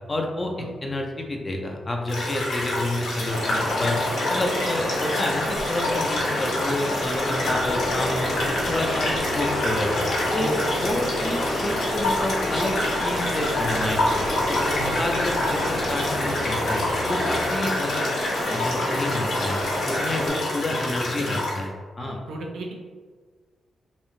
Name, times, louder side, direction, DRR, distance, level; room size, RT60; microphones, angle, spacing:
voice 1, 0.1-4.0 4.3-10.0 10.3-12.7 13.0-18.1 18.5-21.7 22.0-22.2, left 1 dB, 20° left, 2 dB, 0.3 m, -29 dB
sound 1, 2.1-21.6, left 2 dB, 70° left, 0.6 m, -28 dB
sound 2, 3.3-20.3, left 1 dB, 90° left, 0.9 m, -29 dB
Organ, 7.3-18.2, equal, 5° left, 0.7 m, -35 dB
voice 2, 10.4-10.7 14.8-15.1 17.6-17.8 20.1-20.3 21.2-21.3 22.0-22.7, right 2 dB, 75° right, 1 dB, 0.4 m, -36 dB
2.6 x 2.0 x 2.9 m, 1.5 s
wide cardioid pair, 140°, 0 cm